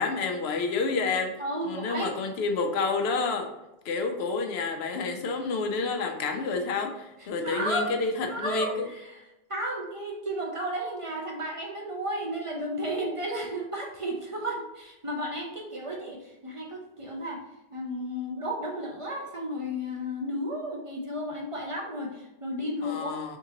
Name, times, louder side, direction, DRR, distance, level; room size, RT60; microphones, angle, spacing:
voice 1, 0.0-1.3 1.6-3.5 3.8-8.9 22.8-23.4, left 4 dB, 85° left, 5 dB, 0.9 m, -29 dB
voice 2, 1.4-2.1 7.4-7.9 8.3-9.2 9.5-17.4 17.7-23.1, equal, 40° right, -1 dB, 0.6 m, -33 dB
3.7 x 3.6 x 2.9 m, 0.95 s
omnidirectional pair, 1.0 m